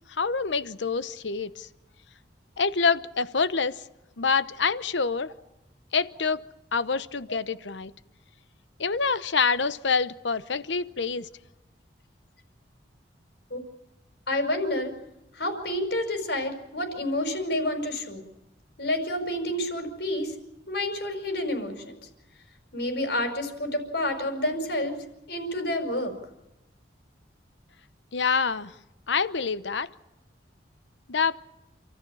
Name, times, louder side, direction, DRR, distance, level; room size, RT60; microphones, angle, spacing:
voice 1, 0.1-1.7 2.6-3.8 4.2-5.3 5.9-6.4 6.7-7.9 8.8-11.3 28.1-28.7 29.1-29.9 31.1-31.4, left 5 dB, 85° left, 14 dB, 0.9 m, -26 dB
voice 2, 14.3-14.9 15.4-18.2 18.8-20.3 20.7-22.0 22.7-26.1, left 1 dB, 65° left, 6 dB, 5.4 m, -29 dB
28.5 x 14.5 x 8.6 m, 0.94 s
head